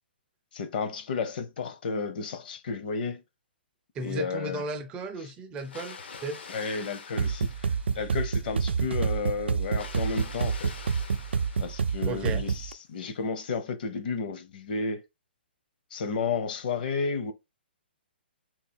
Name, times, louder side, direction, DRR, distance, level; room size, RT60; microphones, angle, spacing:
voice 1, 0.5-3.2 4.0-4.6 6.5-10.7 11.6-15.0 15.9-17.3, left 5 dB, 55° left, 0.9 m, -32 dB
voice 2, 3.9-6.4 12.0-12.4, right 2 dB, 15° right, 0.5 m, -35 dB
Water, 5.6-8.4 9.6-12.4, left 5 dB, 80° left, 1.1 m, -46 dB
sound 1, 7.2-12.7, right 6 dB, 85° right, 0.4 m, -28 dB
3.7 x 2.7 x 4.4 m
hypercardioid pair, 155°, 6 cm